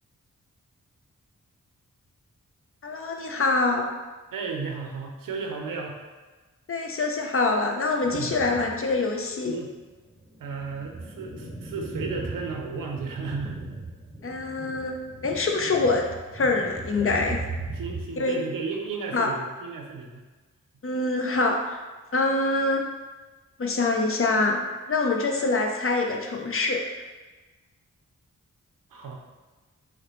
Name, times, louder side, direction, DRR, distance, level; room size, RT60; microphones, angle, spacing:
voice 1, 2.8-3.9 6.7-9.5 14.2-16.1 16.3-17.4 18.2-18.4 19.1-19.3 20.8-21.8 22.1-22.8 23.6-24.6 24.9-26.8, left 3 dB, 40° left, 2 dB, 0.6 m, -25 dB
voice 2, 4.3-6.0 8.0-8.3 9.4-9.7 10.4-13.6 17.7-20.2 28.9-29.2, right 4 dB, 85° right, 2 dB, 0.6 m, -34 dB
sound 1, 8.0-8.9 9.3-9.4 10.1-18.0, right 2 dB, 5° right, 1.3 m, -38 dB
4.8 x 2.2 x 3.0 m, 1.2 s
cardioid pair, 40°, 32 cm